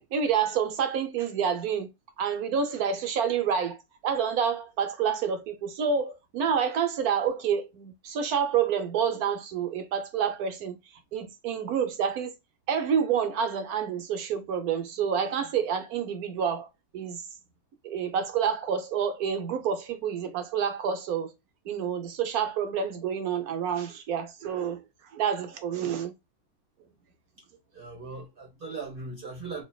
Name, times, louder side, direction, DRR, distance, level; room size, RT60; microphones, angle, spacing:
voice 1, 0.0-1.9 2.2-10.8 11.1-12.4 12.7-17.3 17.8-21.3 21.6-24.8 25.1-26.1, right 7 dB, 85° right, 1.4 m, -28 dB
voice 2, 27.4-29.6, right 4 dB, 40° right, 1.4 m, -39 dB
4.3 x 3.0 x 2.3 m
omnidirectional pair, 1.5 m